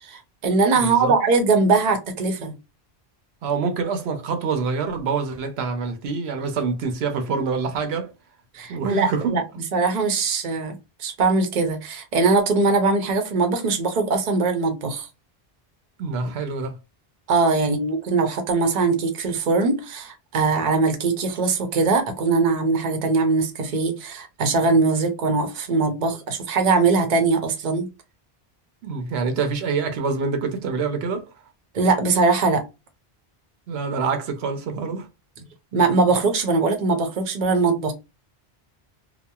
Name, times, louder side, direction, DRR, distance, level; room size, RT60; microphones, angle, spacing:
voice 1, 0.0-2.5 8.5-9.4 9.7-15.1 17.3-27.9 31.7-32.6 35.7-37.9, right 4 dB, 50° right, 0.7 m, -21 dB
voice 2, 0.8-1.2 3.4-8.1 8.7-9.4 16.0-16.8 17.6-17.7 28.8-31.3 33.7-35.1, right 5 dB, 85° right, 0.9 m, -26 dB
2.8 x 2.2 x 2.2 m
omnidirectional pair, 1.0 m